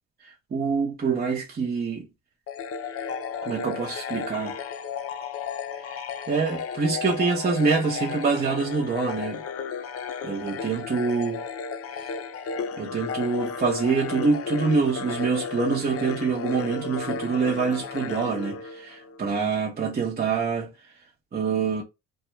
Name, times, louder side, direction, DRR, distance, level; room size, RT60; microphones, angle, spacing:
voice 1, 0.2-2.1 3.4-4.6 5.8-9.4 10.2-11.4 12.0-12.1 12.4-20.7 21.3-21.8, right 5 dB, 30° right, 0.7 m, -26 dB
sound 1, 2.5-19.2, left 6 dB, 50° left, 0.5 m, -33 dB
2.3 x 2.2 x 2.9 m
cardioid pair, 90°, 30 cm